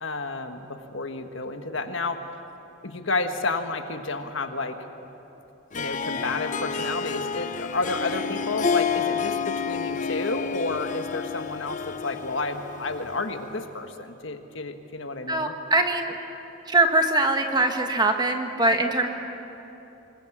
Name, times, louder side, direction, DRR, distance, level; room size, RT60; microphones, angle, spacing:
voice 1, 0.0-2.4 2.8-4.8 5.8-15.5, left 3 dB, 65° left, 6 dB, 1.5 m, -31 dB
Harp, 5.7-13.4, left 5 dB, 40° left, 0.6 m, -30 dB
voice 2, 15.3-16.1 16.7-19.1, right 2 dB, 20° right, 5 dB, 1.4 m, -22 dB
27.0 x 21.0 x 7.4 m, 3.0 s
head